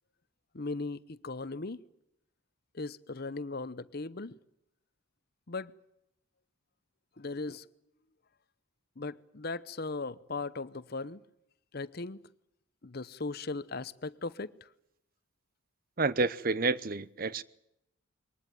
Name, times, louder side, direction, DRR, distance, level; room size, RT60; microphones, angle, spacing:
voice 1, 0.5-1.8 2.7-4.4 5.5-5.7 7.2-7.6 9.0-11.2 11.7-12.2 12.8-14.7, left 3 dB, 50° left, 0.9 m, -38 dB
voice 2, 16.0-17.4, right 3 dB, 45° right, 0.8 m, -29 dB
23.0 x 19.0 x 9.3 m
head